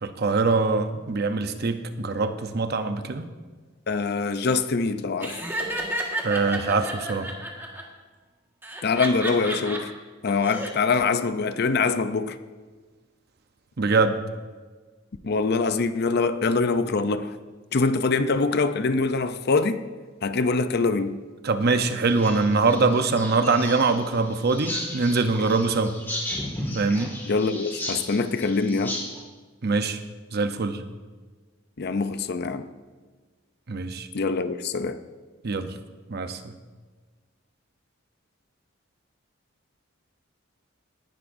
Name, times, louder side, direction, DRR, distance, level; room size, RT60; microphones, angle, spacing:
voice 1, 0.0-3.3 6.2-7.3 13.8-14.2 21.4-25.9 26.7-27.1 29.6-30.0 30.3-30.8 33.7-34.1 35.4-35.7 36.1-36.5, right 3 dB, 55° right, 0.8 m, -23 dB
voice 2, 3.9-5.4 8.8-9.9 10.2-12.4 15.2-17.4 17.7-19.8 20.2-21.2 27.2-29.0 31.8-32.7 34.1-35.0, left 4 dB, 55° left, 0.6 m, -24 dB
Laughter, 5.2-7.8 8.6-9.8 10.3-10.7, right 1 dB, 10° right, 1.6 m, -31 dB
sound 1, 22.0-29.2, left 1 dB, 10° left, 2.1 m, -35 dB
18.5 x 11.0 x 2.7 m
head